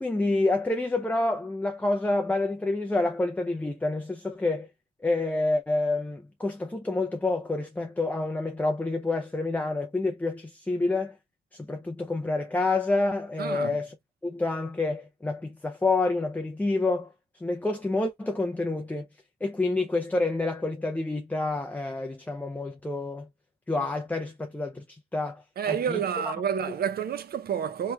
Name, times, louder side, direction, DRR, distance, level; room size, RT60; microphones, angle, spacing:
voice 1, 0.0-4.7 5.0-11.2 11.5-14.0 14.2-17.1 17.4-19.1 19.4-23.3 23.7-26.0, left 2 dB, 10° left, 0.5 m, -28 dB
voice 2, 13.4-13.8 25.6-27.9, right 8 dB, 50° right, 0.6 m, -29 dB
3.1 x 2.9 x 2.2 m
cardioid pair, 90°, 20 cm